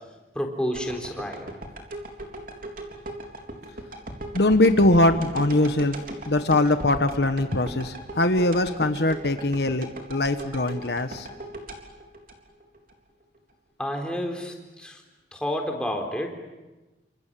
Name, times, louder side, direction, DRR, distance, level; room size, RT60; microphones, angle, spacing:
voice 1, 0.3-1.6 13.8-15.0 15.3-16.4, equal, 5° left, 2 dB, 4.0 m, -30 dB
sound 1, 0.7-12.9 13.4-13.5, right 1 dB, 50° right, 3.7 m, -38 dB
voice 2, 4.3-6.0 6.3-11.3, left 1 dB, 70° left, 9 dB, 1.3 m, -22 dB
29.0 x 26.5 x 7.6 m, 1.1 s
head